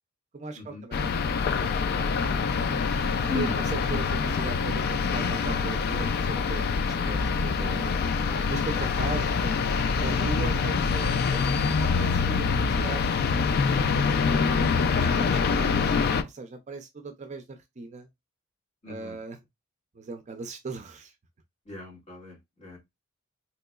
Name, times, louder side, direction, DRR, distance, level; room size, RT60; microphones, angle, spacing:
voice 1, 0.3-1.7 2.0-2.5 3.3-8.0 8.4-9.6 10.0-13.0 13.3-13.8 14.1-14.6 15.0-18.1 18.9-19.4 19.9-21.1, right 3 dB, 35° right, 0.4 m, -38 dB
sound 1, 0.9-16.2, left 5 dB, 50° left, 0.3 m, -25 dB
voice 2, 18.8-19.2 21.7-22.8, left 4 dB, 30° left, 1.8 m, -37 dB
3.7 x 3.0 x 2.3 m
head